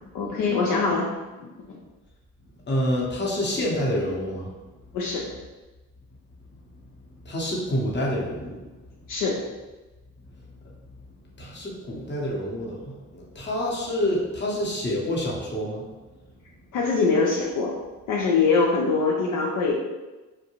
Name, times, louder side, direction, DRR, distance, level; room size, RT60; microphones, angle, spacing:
voice 1, 0.1-1.1 1.4-1.5 4.9-5.3 9.1-9.4 16.7-17.7 18.1-19.7, left 4 dB, 70° left, -2 dB, 0.5 m, -23 dB
voice 2, 2.7-4.5 7.2-8.6 11.4-15.8, equal, 35° left, -3 dB, 0.9 m, -27 dB
2.6 x 2.2 x 2.9 m, 1.2 s
supercardioid pair, 65°, 33 cm